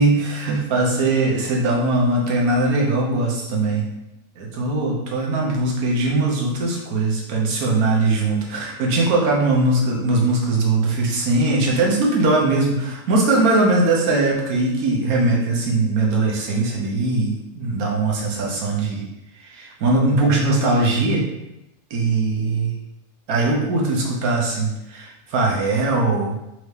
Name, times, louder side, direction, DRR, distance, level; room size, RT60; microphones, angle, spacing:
voice 1, 0.0-3.8 4.4-19.0 19.4-21.3 21.9-22.7 23.3-26.4, right 2 dB, 65° right, -2 dB, 1.3 m, -20 dB
4.5 x 2.7 x 3.2 m, 0.90 s
omnidirectional pair, 1.7 m